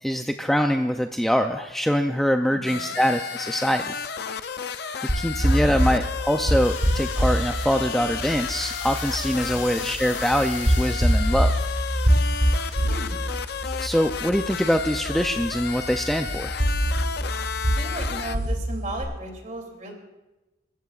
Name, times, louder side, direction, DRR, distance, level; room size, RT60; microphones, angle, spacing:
voice 1, 0.0-4.0 5.1-11.5 13.8-16.6, equal, ahead, 5 dB, 0.4 m, -24 dB
voice 2, 2.5-3.0 9.4-9.7 12.8-13.3 17.8-19.9, right 1 dB, 40° right, 2 dB, 2.8 m, -37 dB
sound 1, 2.7-18.4, left 6 dB, 55° left, 0.5 m, -33 dB
sound 2, 5.1-19.0, equal, 55° right, 6.7 m, -25 dB
sound 3, 6.6-15.2, left 6 dB, 85° left, 3.8 m, -41 dB
28.5 x 14.5 x 2.4 m, 1.1 s
head